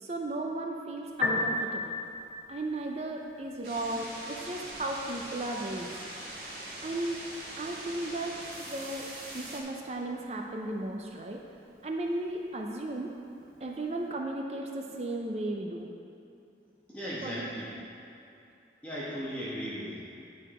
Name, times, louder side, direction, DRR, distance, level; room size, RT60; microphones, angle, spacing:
voice 1, 0.0-2.0 2.5-5.9 6.8-7.2 7.6-9.1 9.3-11.4 11.8-13.1 13.6-15.9 17.2-17.5, right 2 dB, 35° right, 1 dB, 0.5 m, -35 dB
Piano, 1.1-14.1, left 2 dB, 60° left, 1.2 m, -41 dB
sound 1, 3.6-9.6, right 1 dB, 55° right, 1.5 m, -42 dB
voice 2, 16.9-17.7 18.8-20.0, equal, 10° left, -9 dB, 1.2 m, -36 dB
9.8 x 4.9 x 4.9 m, 2.7 s
head